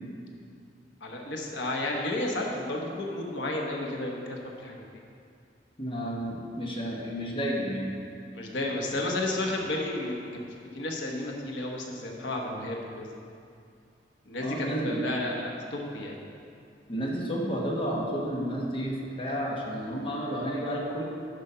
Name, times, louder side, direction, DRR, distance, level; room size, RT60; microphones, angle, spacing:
voice 1, 1.0-4.8 8.3-13.2 14.3-16.2, left 1 dB, 90° left, 0 dB, 1.2 m, -32 dB
voice 2, 5.8-7.9 14.4-15.0 16.9-21.0, equal, 30° left, -3 dB, 1.2 m, -31 dB
10.5 x 5.3 x 5.7 m, 2.4 s
head